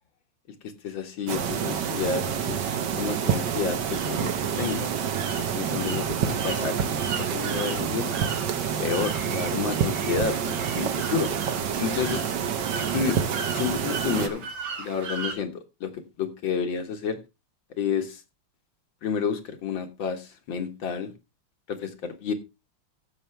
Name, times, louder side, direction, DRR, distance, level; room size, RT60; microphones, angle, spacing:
voice 1, 0.8-4.9 5.4-8.1 8.8-11.3 11.8-12.3 12.9-13.2 13.5-14.5 14.8-17.2 17.8-18.2 19.0-21.1 21.7-22.3, left 6 dB, 65° left, 2.2 m, -30 dB
sound 1, 1.3-14.3, right 7 dB, 60° right, 1.5 m, -28 dB
sound 2, 3.8-15.3, right 5 dB, 80° right, 2.7 m, -38 dB
14.5 x 7.1 x 3.3 m
omnidirectional pair, 2.3 m